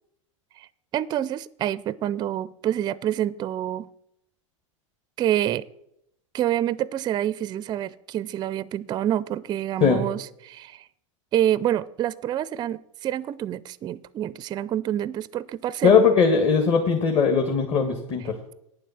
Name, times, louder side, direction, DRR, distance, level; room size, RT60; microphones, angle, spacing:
voice 1, 0.9-3.9 5.2-5.7 6.3-10.9 11.3-16.0, right 11 dB, 25° right, 20 dB, 0.4 m, -27 dB
voice 2, 15.8-18.4, left 6 dB, 35° left, 3 dB, 1.6 m, -19 dB
9.3 x 7.4 x 7.0 m, 0.77 s
hypercardioid pair, 110°, 17 cm